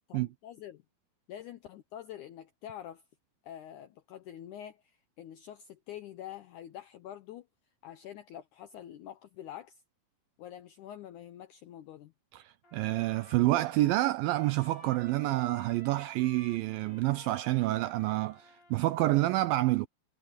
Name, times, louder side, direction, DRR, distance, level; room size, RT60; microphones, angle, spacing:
voice 1, 0.1-0.8 1.3-3.0 3.4-7.5 7.8-9.8 10.4-12.1, left 11 dB, 80° left, 1.8 m, -46 dB
voice 2, 12.3-19.9, right 17 dB, 85° right, 2.0 m, -28 dB
Trumpet, 12.6-19.2, left 3 dB, 30° left, 4.2 m, -56 dB
omnidirectional pair, 4.6 m